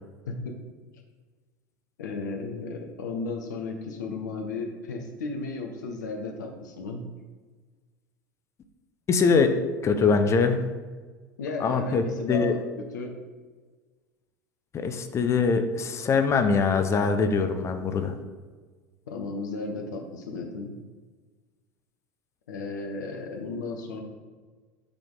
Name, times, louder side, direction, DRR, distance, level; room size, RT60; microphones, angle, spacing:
voice 1, 2.0-7.0 11.4-12.6 12.9-13.2 19.1-20.7 22.5-24.0, left 3 dB, 65° left, 3 dB, 0.7 m, -34 dB
voice 2, 9.1-9.6 9.8-10.6 11.6-12.6 14.7-18.1, left 5 dB, 25° left, 7 dB, 0.5 m, -23 dB
8.1 x 3.4 x 3.8 m, 1.4 s
figure-of-eight pair, 75°, 10 cm